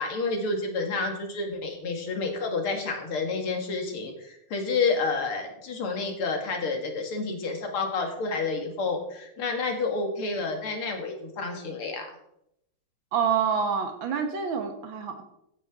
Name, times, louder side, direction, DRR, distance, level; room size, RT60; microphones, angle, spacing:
voice 1, 0.0-12.1, left 4 dB, 80° left, 3 dB, 2.7 m, -29 dB
voice 2, 13.1-15.2, right 6 dB, 65° right, 5 dB, 2.2 m, -27 dB
14.5 x 9.3 x 3.7 m, 0.79 s
omnidirectional pair, 2.4 m